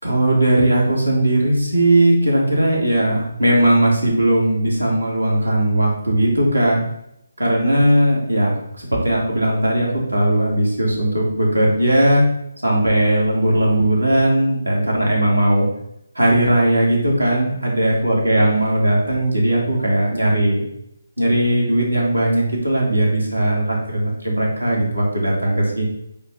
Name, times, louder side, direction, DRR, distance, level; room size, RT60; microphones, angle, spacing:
voice 1, 0.0-6.8 7.4-12.2 12.6-15.7 16.1-20.6 21.2-25.8, right 1 dB, 80° right, -2 dB, 2.5 m, -18 dB
8.6 x 2.9 x 5.4 m, 0.77 s
figure-of-eight pair, 145°, 0 cm